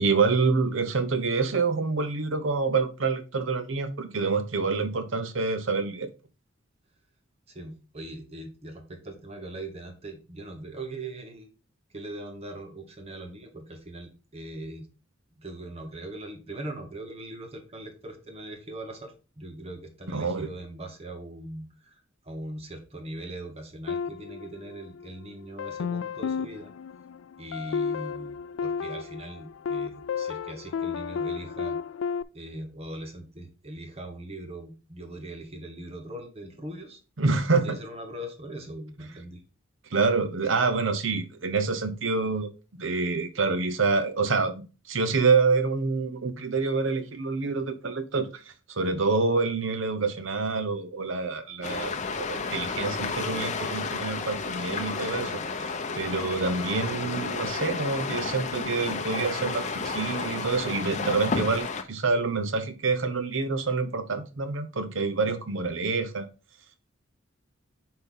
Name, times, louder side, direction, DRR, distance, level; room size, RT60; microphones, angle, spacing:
voice 1, 0.0-6.1 20.1-20.5 37.2-37.8 39.9-42.5 42.8-48.4 48.8-66.3, right 4 dB, 70° right, 0.8 m, -27 dB
voice 2, 7.5-11.5 11.9-14.9 15.3-26.7 27.4-31.8 32.3-37.0 37.6-39.4, right 1 dB, 30° right, 1.1 m, -40 dB
sound 1, 23.9-25.1 25.6-32.2, left 6 dB, 75° left, 0.3 m, -32 dB
sound 2, 51.6-61.8, left 4 dB, 35° left, 0.7 m, -32 dB
7.8 x 4.4 x 3.7 m
head